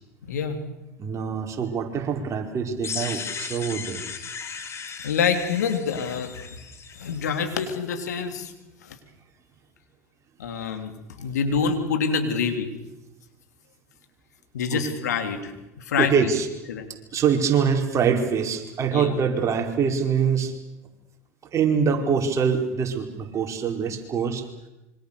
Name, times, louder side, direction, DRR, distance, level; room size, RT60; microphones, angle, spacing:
voice 1, 0.3-0.6 5.0-6.4 7.0-8.5 8.8-9.0 10.4-10.9 11.2-12.7 14.5-16.1 16.7-16.9 18.9-19.1, left 6 dB, 85° left, 7 dB, 3.5 m, -26 dB
voice 2, 1.0-4.0 14.7-14.8 16.0-16.5 17.1-20.5 21.5-24.4, right 6 dB, 35° right, 3 dB, 4.9 m, -24 dB
sound 1, 2.8-7.7, left 6 dB, 30° left, 3.2 m, -36 dB
26.5 x 24.5 x 6.9 m, 0.98 s
hypercardioid pair, 90°, 9 cm